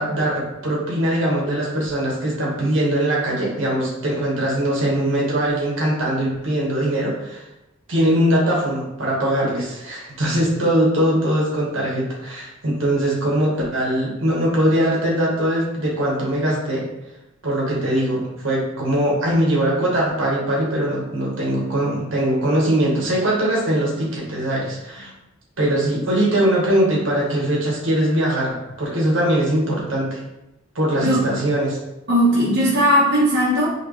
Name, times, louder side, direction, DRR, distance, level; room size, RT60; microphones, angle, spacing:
voice 1, 0.0-7.4 7.9-16.8 17.4-25.1 25.6-30.2 30.7-31.8, right 1 dB, 80° right, -4 dB, 1.6 m, -21 dB
voice 2, 32.1-33.7, equal, 60° right, -9 dB, 1.3 m, -17 dB
4.9 x 3.0 x 3.2 m, 0.93 s
head